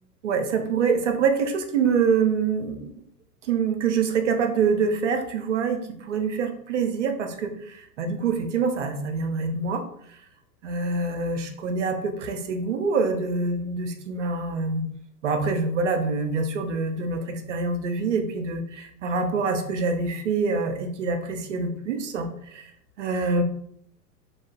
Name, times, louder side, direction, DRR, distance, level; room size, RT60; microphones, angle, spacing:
voice 1, 0.2-2.9 3.5-7.5 8.0-9.8 10.6-14.8 15.2-22.7 23.0-23.4, right 4 dB, 50° right, 6 dB, 0.5 m, -25 dB
3.1 x 2.3 x 3.5 m, 0.69 s
figure-of-eight pair, 100°, 50 cm